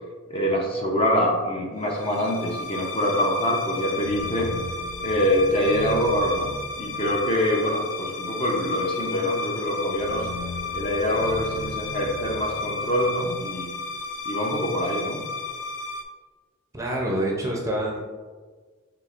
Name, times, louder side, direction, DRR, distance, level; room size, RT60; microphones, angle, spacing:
voice 1, 0.3-4.5 5.0-6.5 6.8-10.3 10.7-13.7 14.3-15.3, equal, 25° left, 0 dB, 0.6 m, -25 dB
sound 1, 1.9-16.0, left 3 dB, 90° left, 0.5 m, -33 dB
voice 2, 16.7-18.0, right 1 dB, 15° right, -2 dB, 0.6 m, -26 dB
5.8 x 3.3 x 2.5 m, 1.5 s
head